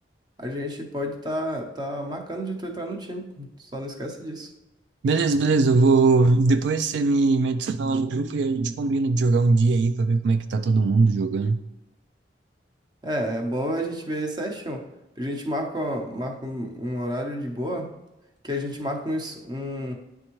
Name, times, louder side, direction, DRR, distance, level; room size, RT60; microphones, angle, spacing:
voice 1, 0.4-4.5 13.0-14.8 15.2-17.9 18.4-19.9, equal, 25° right, 0.8 m, -30 dB
voice 2, 5.0-11.6, right 3 dB, 75° right, 0.3 m, -20 dB
9.8 x 3.5 x 3.0 m
head